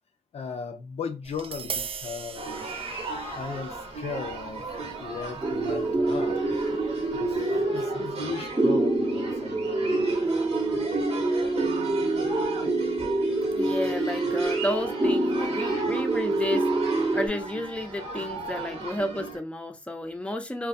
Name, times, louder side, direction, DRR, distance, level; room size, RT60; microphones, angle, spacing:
voice 1, 0.3-2.7 3.3-4.7 5.0-6.4 7.1-10.2, left 5 dB, 70° left, 0.5 m, -37 dB
Tap, 1.2-7.4, right 6 dB, 55° right, 0.4 m, -41 dB
sound 1, 2.3-19.4, right 3 dB, 75° right, 1.0 m, -36 dB
sound 2, 5.4-17.3, right 2 dB, 30° right, 0.7 m, -26 dB
voice 2, 13.5-16.7 17.1-20.7, left 1 dB, 10° left, 0.5 m, -31 dB
2.3 x 2.2 x 2.5 m
supercardioid pair, 40°, 11 cm